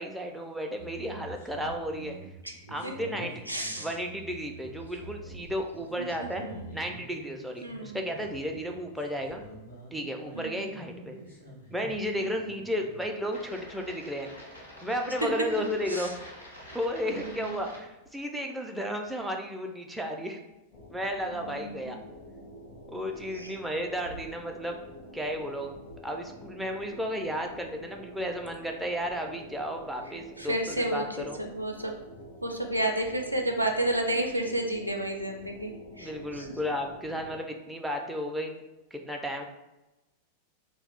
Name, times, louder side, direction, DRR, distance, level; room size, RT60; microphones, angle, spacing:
voice 1, 0.0-2.2 2.7-3.4 3.8-6.5 6.7-9.4 9.9-11.2 11.7-14.3 14.8-16.1 16.7-20.4 20.9-22.0 22.9-24.8 25.1-25.7 26.0-31.4 36.0-38.5 38.9-39.4, equal, 5° right, 2 dB, 0.3 m, -33 dB
sound 1, 0.8-17.8, right 1 dB, 85° left, 0.8 m, -47 dB
voice 2, 3.5-3.9 6.0-6.7 7.6-8.0 10.3-10.8 12.2-12.3 15.9-16.1 17.1-17.6 21.3-22.0 23.3-23.6 30.4-31.9 32.4-36.5, right 1 dB, 90° right, 2 dB, 0.3 m, -32 dB
sound 2, 20.7-37.4, equal, 45° left, 0.5 m, -48 dB
2.3 x 2.0 x 3.5 m, 1.0 s
figure-of-eight pair, 90°, 0 cm